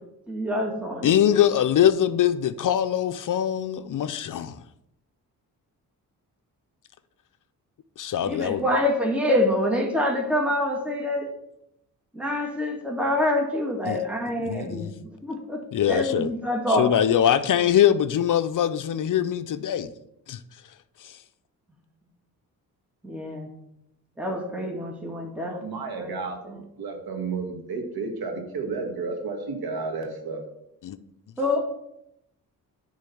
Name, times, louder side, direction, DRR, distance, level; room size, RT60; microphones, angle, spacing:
voice 1, 0.3-1.1 8.3-11.3 12.1-14.9 15.2-15.6 15.9-16.9 23.0-23.5 24.2-25.6 26.0-26.1 26.4-26.6 31.4-31.6, left 1 dB, 5° right, 1.7 m, -26 dB
voice 2, 1.0-4.5 8.0-8.6 13.9-14.0 14.4-14.9 15.7-16.3 16.7-19.9 20.3-20.4 21.0-21.2 30.8-31.0, left 10 dB, 60° left, 0.6 m, -22 dB
voice 3, 25.5-30.4, right 4 dB, 80° right, 1.9 m, -32 dB
9.5 x 3.8 x 7.0 m
cardioid pair, 85°, 36 cm